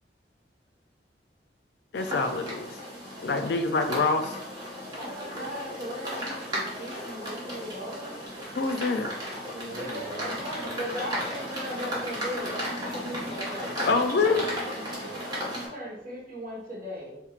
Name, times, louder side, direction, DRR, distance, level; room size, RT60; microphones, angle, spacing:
voice 1, 1.9-2.7 3.2-4.4 8.6-9.1 13.9-14.5, left 3 dB, 65° left, 7 dB, 0.4 m, -25 dB
sound 1, 1.9-15.7, equal, 25° right, 1.1 m, -35 dB
voice 2, 4.9-8.2 9.8-13.8 15.5-17.2, equal, 50° right, -4 dB, 1.4 m, -38 dB
voice 3, 9.5-10.9 13.5-15.5, right 2 dB, 70° right, 0 dB, 0.8 m, -41 dB
4.4 x 3.6 x 2.4 m, 0.87 s
head